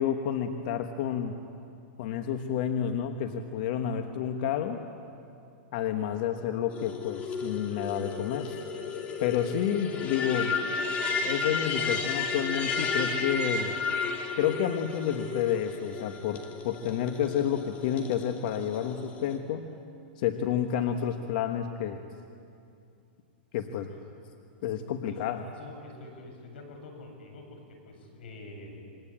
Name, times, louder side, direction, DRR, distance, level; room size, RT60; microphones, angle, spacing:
voice 1, 0.0-1.4 2.0-4.8 5.7-8.6 9.2-10.5 11.2-13.8 14.4-19.7 20.2-22.0 23.5-23.9 24.6-25.5, left 9 dB, 50° left, 6 dB, 1.4 m, -30 dB
sound 1, 6.7-19.4, left 4 dB, 25° left, 2.6 m, -33 dB
voice 2, 25.0-28.8, left 2 dB, 75° left, 3 dB, 7.7 m, -47 dB
27.0 x 23.0 x 8.8 m, 2.6 s
hypercardioid pair, 150°, 6 cm